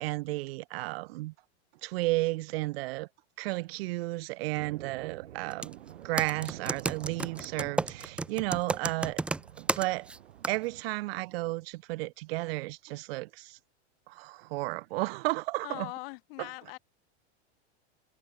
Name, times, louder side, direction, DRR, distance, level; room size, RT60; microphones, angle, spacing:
voice 1, 0.0-1.3 1.8-3.1 3.4-5.8 6.0-9.2 9.6-10.1 10.5-13.6 14.1-15.9 16.4-16.5, right 21 dB, 60° right, 1.2 m, -33 dB
sound 1, 4.5-10.8, right 12 dB, 85° right, 6.7 m, -48 dB
Computer keyboard, 5.5-5.7 6.2-10.2 10.4-10.6, right 2 dB, 5° right, 0.3 m, -31 dB
voice 2, 15.6-16.8, left 25 dB, 60° left, 4.7 m, -41 dB
supercardioid pair, 135°, 33 cm